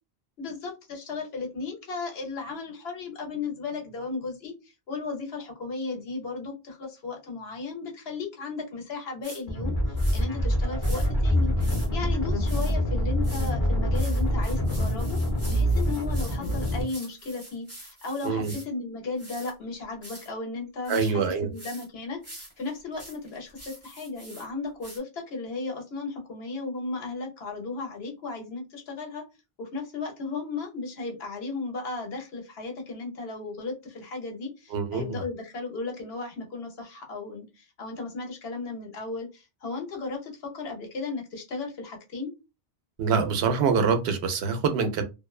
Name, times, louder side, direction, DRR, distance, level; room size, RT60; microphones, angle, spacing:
voice 1, 0.4-15.2 15.5-29.2 29.6-42.3, left 3 dB, 75° left, 1.0 m, -35 dB
sound 1, 9.2-9.4 10.0-10.2 10.8-11.1 11.6-11.9 12.5-12.7 13.2-13.5 13.9-18.7 19.2-19.5 20.0-20.3 20.8-21.1 21.5-21.9 22.2-24.5 24.8-25.0, right 1 dB, 15° right, 0.9 m, -45 dB
sound 2, 9.5-16.8, equal, 20° left, 0.8 m, -25 dB
voice 2, 20.9-21.5 34.7-35.2 43.0-45.0, right 5 dB, 85° right, 0.8 m, -25 dB
2.5 x 2.1 x 2.3 m
omnidirectional pair, 1.1 m